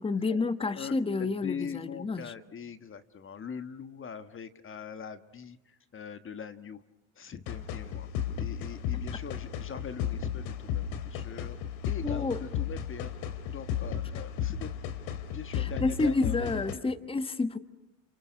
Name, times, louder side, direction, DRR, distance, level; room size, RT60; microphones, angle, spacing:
voice 1, 0.0-2.3 12.0-12.4 15.5-17.6, left 3 dB, 15° left, 11 dB, 1.4 m, -30 dB
voice 2, 0.7-6.8 7.1-8.1 8.4-11.6 11.9-13.1 13.4-16.6, left 7 dB, 35° left, 10 dB, 1.4 m, -42 dB
sound 1, 7.5-16.7, left 9 dB, 75° left, 3.0 m, -34 dB
29.0 x 28.0 x 6.3 m, 0.89 s
supercardioid pair, 95°, 38 cm